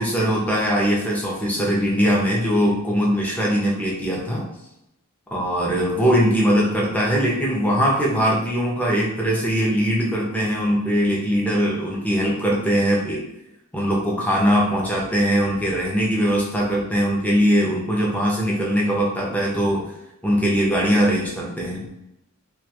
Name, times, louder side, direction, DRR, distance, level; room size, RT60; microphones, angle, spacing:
voice 1, 0.0-4.4 5.3-13.2 13.7-19.8 20.2-21.9, equal, 5° left, -3 dB, 0.4 m, -21 dB
2.2 x 2.2 x 2.8 m, 0.86 s
head